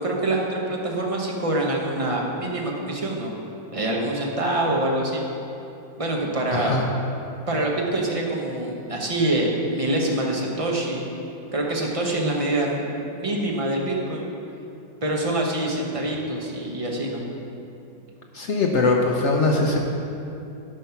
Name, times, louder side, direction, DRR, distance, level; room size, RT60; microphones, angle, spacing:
voice 1, 0.0-3.3 3.7-5.2 6.0-6.8 7.5-11.1 11.5-14.3 15.0-17.2, right 1 dB, 25° right, -2 dB, 0.9 m, -25 dB
voice 2, 6.5-6.8 18.3-19.8, left 3 dB, 65° left, 0 dB, 0.7 m, -21 dB
11.5 x 5.6 x 5.8 m, 2.8 s
omnidirectional pair, 2.1 m